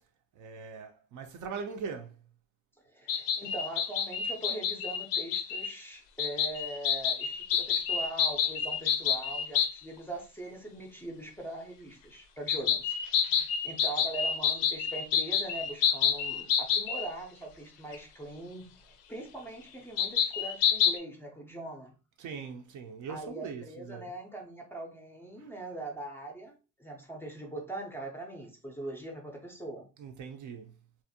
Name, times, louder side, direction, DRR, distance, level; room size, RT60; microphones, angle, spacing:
voice 1, 0.4-2.1 22.2-24.1 30.0-30.7, right 5 dB, 50° right, 0.5 m, -41 dB
voice 2, 2.8-22.0 23.1-29.9, right 2 dB, 5° left, 0.5 m, -42 dB
sound 1, 3.1-5.7 6.2-9.7 12.5-17.1 17.9-18.0 20.0-21.0, left 8 dB, 60° left, 0.5 m, -28 dB
2.5 x 2.0 x 2.6 m
cardioid pair, 105°, 38 cm